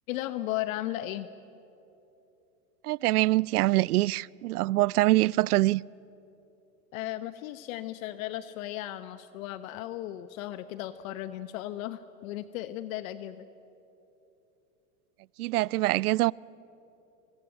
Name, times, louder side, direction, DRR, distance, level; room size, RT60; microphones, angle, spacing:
voice 1, 0.1-1.3 6.9-13.5, left 14 dB, 65° left, 1.0 m, -36 dB
voice 2, 2.8-5.8 15.4-16.3, right 18 dB, 80° right, 0.5 m, -24 dB
24.5 x 22.5 x 9.1 m
hypercardioid pair, 95°, 44 cm